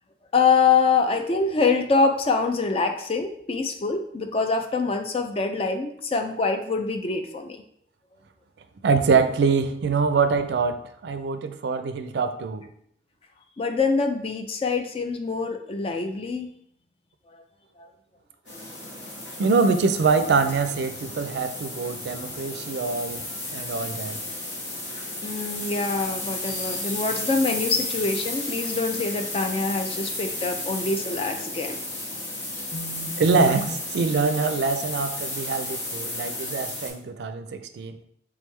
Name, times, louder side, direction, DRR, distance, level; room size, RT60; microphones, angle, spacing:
voice 1, 0.3-7.6 13.6-16.5 17.8-17.9 25.2-31.8 32.7-33.7, left 4 dB, 30° left, 6 dB, 0.4 m, -25 dB
voice 2, 8.8-12.6 19.4-23.2 23.5-24.2 33.2-37.9, right 4 dB, 70° right, 9 dB, 0.4 m, -24 dB
sound 1, 18.5-36.9, left 2 dB, 90° left, 1.3 m, -33 dB
3.5 x 3.4 x 3.2 m, 0.69 s
head